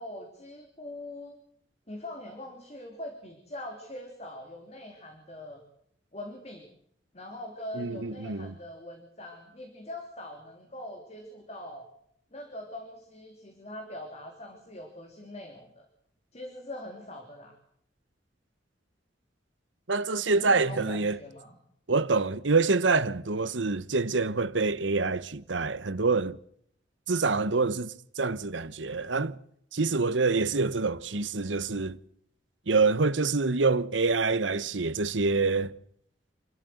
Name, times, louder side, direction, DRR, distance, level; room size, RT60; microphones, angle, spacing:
voice 1, 0.0-1.4 1.9-5.6 6.1-6.7 7.1-11.9 12.3-15.9 16.3-17.6 20.2-21.5, left 1 dB, 35° left, 3.4 m, -42 dB
voice 2, 7.7-8.5 19.9-21.2 21.9-26.4 27.1-29.4 29.7-32.0 32.7-35.7, right 3 dB, 85° right, 1.1 m, -26 dB
27.5 x 13.0 x 7.9 m
head